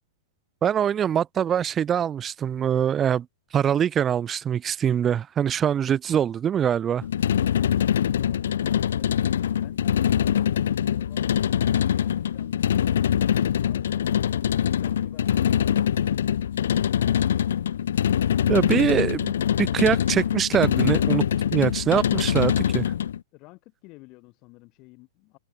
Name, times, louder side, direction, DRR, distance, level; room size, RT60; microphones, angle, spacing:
voice 1, 0.6-3.3 3.5-7.0 18.5-19.3 19.6-21.2 21.5-22.8, right 9 dB, 20° right, 0.3 m, -23 dB
sound 1, 7.0-23.2, left 9 dB, 80° left, 1.1 m, -23 dB
voice 2, 9.5-14.3 14.7-16.4 23.3-25.4, left 24 dB, 35° left, 7.0 m, -51 dB
hypercardioid pair, 155°, 0 cm